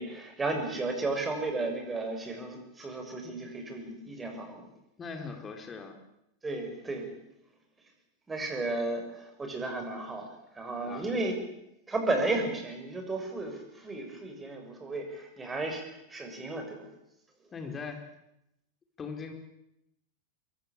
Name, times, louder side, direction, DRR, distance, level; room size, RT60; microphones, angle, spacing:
voice 1, 0.0-4.6 6.4-7.1 8.3-11.4 11.9-16.9, right 2 dB, 15° right, 4 dB, 6.8 m, -34 dB
voice 2, 5.0-6.0 10.8-11.1 17.5-18.0 19.0-19.3, left 5 dB, 20° left, 4 dB, 4.8 m, -40 dB
23.0 x 23.0 x 8.7 m, 0.84 s
figure-of-eight pair, 90°, 0 cm